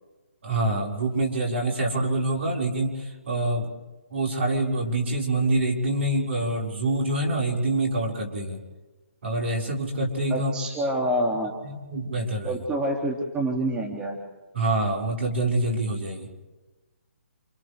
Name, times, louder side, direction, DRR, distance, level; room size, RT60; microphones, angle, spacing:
voice 1, 0.4-3.7 4.1-8.6 9.2-10.5 11.6-12.6 14.5-16.3, right 2 dB, 60° right, 0 dB, 4.7 m, -26 dB
voice 2, 10.3-11.5 12.4-14.2, right 1 dB, 15° right, 0 dB, 2.3 m, -27 dB
29.0 x 26.5 x 3.3 m, 1.2 s
figure-of-eight pair, 140°, 7 cm